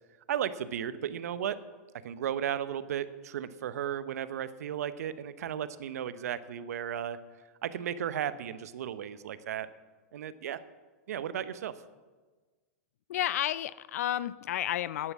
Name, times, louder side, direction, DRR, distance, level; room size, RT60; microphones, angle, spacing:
voice 1, 0.3-1.6 2.0-7.2 7.6-9.7 10.1-10.6 11.1-11.7, right 9 dB, 70° right, 14 dB, 0.8 m, -34 dB
voice 2, 13.1-15.1, left 12 dB, 65° left, 18 dB, 0.4 m, -31 dB
12.0 x 9.8 x 7.3 m, 1.3 s
hypercardioid pair, 110°, 9 cm